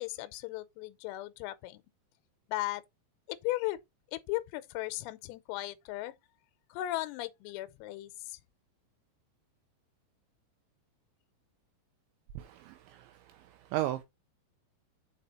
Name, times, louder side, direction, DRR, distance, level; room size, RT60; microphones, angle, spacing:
voice 1, 0.0-1.8 2.5-2.8 3.3-3.8 4.1-6.1 6.7-8.4, left 17 dB, 90° left, 3.4 m, -36 dB
voice 2, 12.4-13.0 13.7-14.0, right 14 dB, 90° right, 2.6 m, -34 dB
6.8 x 5.0 x 4.1 m
omnidirectional pair, 5.9 m